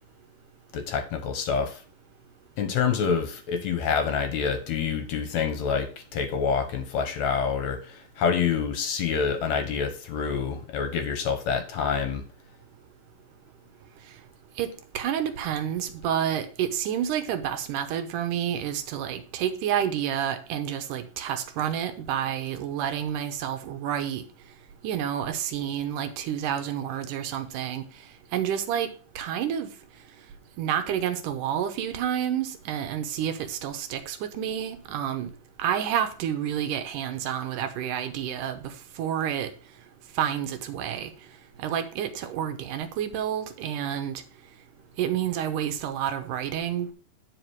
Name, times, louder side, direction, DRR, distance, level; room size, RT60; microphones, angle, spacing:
voice 1, 0.7-1.8 2.6-12.2, left 6 dB, 65° left, 7 dB, 2.2 m, -27 dB
voice 2, 14.9-24.2 24.8-27.8 28.3-28.9 29.2-29.7 30.6-35.3 35.6-39.5 40.2-41.1 41.6-44.2 45.0-46.9, right 9 dB, 80° right, 8 dB, 2.4 m, -29 dB
9.7 x 5.0 x 4.6 m, 0.39 s
omnidirectional pair, 3.8 m